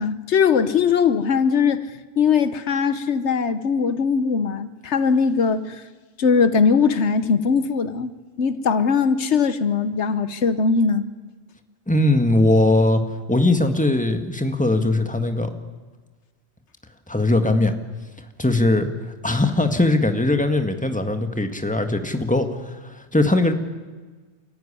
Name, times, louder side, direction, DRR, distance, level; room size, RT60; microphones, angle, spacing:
voice 1, 0.0-1.8 2.2-5.8 6.2-8.1 8.4-11.1, left 5 dB, 85° left, 13 dB, 1.3 m, -20 dB
voice 2, 11.9-13.0 13.3-15.5 17.1-17.8 18.4-18.9 19.2-23.5, left 2 dB, 5° left, 7 dB, 1.8 m, -20 dB
29.5 x 14.0 x 10.0 m, 1.3 s
omnidirectional pair, 1.1 m